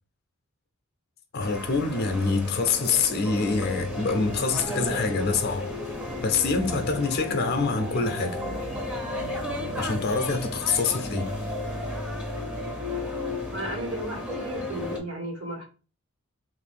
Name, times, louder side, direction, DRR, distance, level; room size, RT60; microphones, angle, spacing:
voice 1, 1.3-5.7 6.2-8.4 9.8-11.3, left 4 dB, 45° left, 0.5 m, -25 dB
sound 1, 1.4-15.0, left 1 dB, 5° right, 0.6 m, -33 dB
voice 2, 13.4-15.6, right 1 dB, 75° right, 1.4 m, -34 dB
3.1 x 2.6 x 3.4 m
head